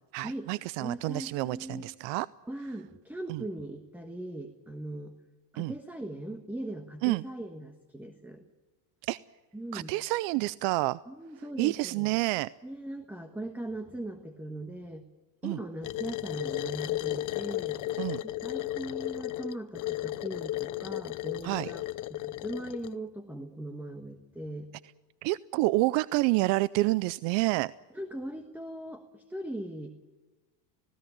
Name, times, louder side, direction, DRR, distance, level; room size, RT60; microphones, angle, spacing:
voice 1, 0.1-2.3 3.3-3.4 5.6-5.7 7.0-7.2 9.0-9.2 9.7-11.0 11.6-12.5 15.4-15.6 18.0-18.2 21.4-21.7 25.2-27.7, right 20 dB, 60° right, 19 dB, 0.6 m, -28 dB
voice 2, 0.8-1.9 2.5-5.1 5.5-8.4 9.5-10.0 11.1-12.1 12.6-15.1 15.4-17.8 18.2-21.8 22.1-24.7 27.9-29.9, right 1 dB, 5° right, 7 dB, 1.3 m, -39 dB
sound 1, 15.8-23.0, left 16 dB, 40° left, 0.6 m, -34 dB
19.0 x 17.0 x 9.9 m, 1.2 s
supercardioid pair, 115°, 49 cm